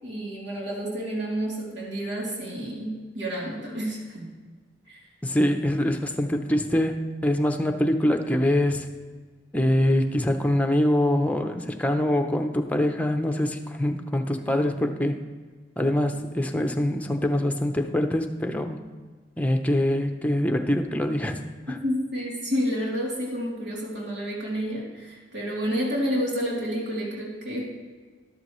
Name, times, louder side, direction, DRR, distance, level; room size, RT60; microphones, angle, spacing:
voice 1, 0.0-4.3 4.9-5.0 21.8-27.7, equal, 80° right, -5 dB, 3.1 m, -30 dB
voice 2, 5.2-8.9 9.5-15.2 15.8-18.8 19.4-21.8, left 1 dB, 10° left, 5 dB, 0.7 m, -24 dB
13.0 x 12.0 x 3.1 m, 1.5 s
head